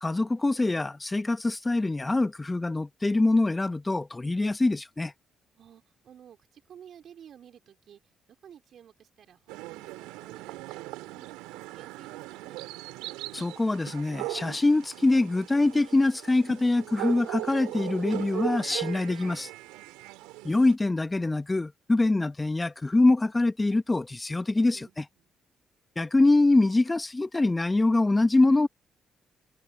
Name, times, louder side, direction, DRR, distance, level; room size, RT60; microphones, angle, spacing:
voice 1, 0.0-5.1 13.3-19.5 20.4-25.0 26.0-28.7, left 2 dB, 25° left, 1.6 m, -24 dB
voice 2, 5.5-8.0 8.4-12.7 24.5-25.3, right 9 dB, 65° right, 5.2 m, -53 dB
sound 1, 9.5-20.7, right 20 dB, 85° right, 3.9 m, -38 dB
hypercardioid pair, 50°, 0 cm